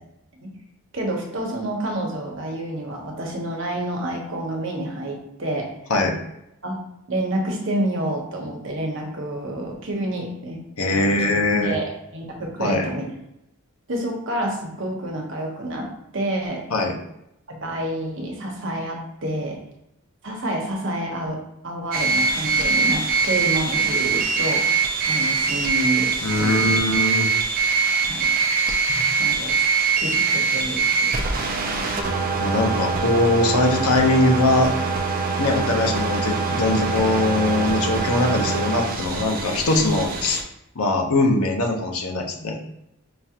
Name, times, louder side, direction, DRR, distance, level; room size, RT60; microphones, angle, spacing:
voice 1, 0.9-5.7 6.6-6.8 7.1-10.6 10.9-13.1 13.9-16.7 17.5-19.6 20.2-24.7 25.1-26.8 28.1-28.3 29.2-29.6 30.0-31.9, right 1 dB, 60° right, 0 dB, 0.9 m, -29 dB
voice 2, 10.8-11.8 12.6-12.9 16.7-16.9 26.2-27.3 28.9-29.1 32.4-34.7 35.4-40.4 40.7-42.6, left 2 dB, 85° left, 2 dB, 0.8 m, -21 dB
sound 1, 21.9-40.4, right 4 dB, 40° right, 0.4 m, -23 dB
5.0 x 2.4 x 2.8 m, 0.83 s
head